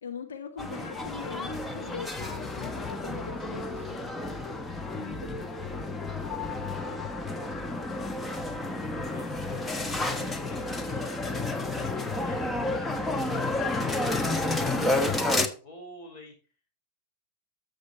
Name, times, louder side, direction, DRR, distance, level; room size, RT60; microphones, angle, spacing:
voice 1, 0.0-4.1 4.9-5.6 14.7-15.0, left 7 dB, 65° left, 1.5 m, -41 dB
sound 1, 0.6-15.5, left 2 dB, 10° left, 1.1 m, -31 dB
voice 2, 8.6-16.3, left 2 dB, 40° left, 5.0 m, -50 dB
13.0 x 6.7 x 4.4 m
figure-of-eight pair, 90°, 0 cm